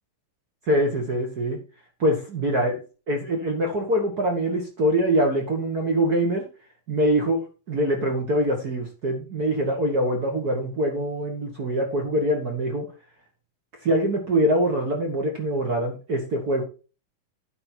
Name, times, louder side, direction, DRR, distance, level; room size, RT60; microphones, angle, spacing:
voice 1, 0.7-1.6 2.0-2.7 3.1-6.4 6.9-12.8 13.8-16.6, equal, 60° right, 2 dB, 0.9 m, -24 dB
11.0 x 5.4 x 4.4 m, 0.34 s
omnidirectional pair, 4.1 m